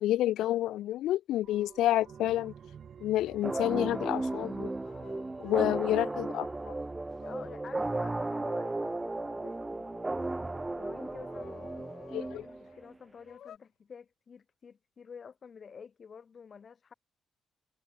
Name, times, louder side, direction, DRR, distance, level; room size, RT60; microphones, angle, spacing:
voice 1, 0.0-2.5 3.0-4.7 5.4-6.7 12.1-12.5, left 14 dB, 85° left, 0.4 m, -29 dB
sound 1, 1.4-10.8 11.1-11.2, right 7 dB, 55° right, 0.7 m, -54 dB
sound 2, 3.3-3.9 4.8-6.4 7.2-12.5 13.2-13.6, left 10 dB, 65° left, 4.2 m, -54 dB
sound 3, 3.4-12.9, right 2 dB, 15° right, 0.4 m, -35 dB
voice 2, 7.2-9.9 10.8-11.7 12.1-16.9, left 6 dB, 45° left, 1.1 m, -50 dB
cardioid pair, 90°, 0 cm